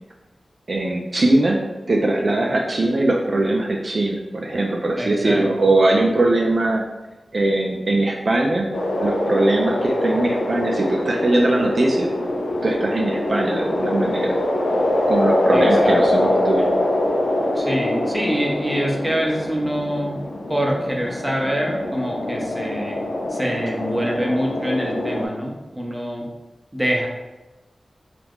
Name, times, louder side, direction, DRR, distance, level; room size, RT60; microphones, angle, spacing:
voice 1, 0.7-1.6 1.9-6.8 7.3-8.7 9.0-12.1 12.6-14.3 15.1-16.7, right 2 dB, 55° right, 0 dB, 0.3 m, -20 dB
voice 2, 5.0-5.4 15.5-16.3 17.5-20.2 20.5-23.0 23.3-26.3 26.7-27.1, equal, 10° right, -1 dB, 0.6 m, -25 dB
sound 1, 8.7-25.3, left 1 dB, 80° left, 0.5 m, -23 dB
2.8 x 2.4 x 3.5 m, 1.1 s
wide cardioid pair, 65°, 0 cm